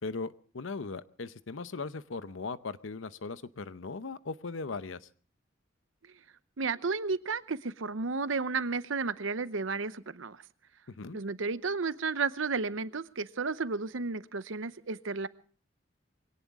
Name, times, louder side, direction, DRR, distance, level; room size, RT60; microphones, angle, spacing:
voice 1, 0.0-5.1 10.9-11.2, left 4 dB, 85° left, 14 dB, 0.8 m, -38 dB
voice 2, 6.6-10.4 11.1-15.3, right 4 dB, 85° right, 14 dB, 0.8 m, -32 dB
22.5 x 17.5 x 3.6 m, 0.42 s
head